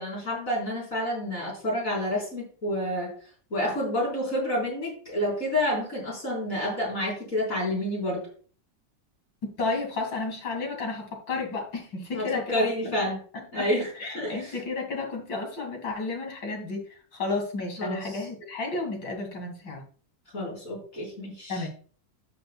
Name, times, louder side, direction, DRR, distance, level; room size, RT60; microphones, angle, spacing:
voice 1, 0.0-3.1 3.5-8.2 12.1-12.3 12.5-13.2 13.5-13.9 14.1-14.5 17.8-18.1 20.3-21.5, left 1 dB, 45° left, -3 dB, 4.7 m, -29 dB
voice 2, 9.4-13.0 13.3-13.7 14.0-19.8 21.5-21.7, left 3 dB, 75° left, 2 dB, 3.1 m, -32 dB
13.0 x 6.8 x 2.3 m, 0.43 s
omnidirectional pair, 2.0 m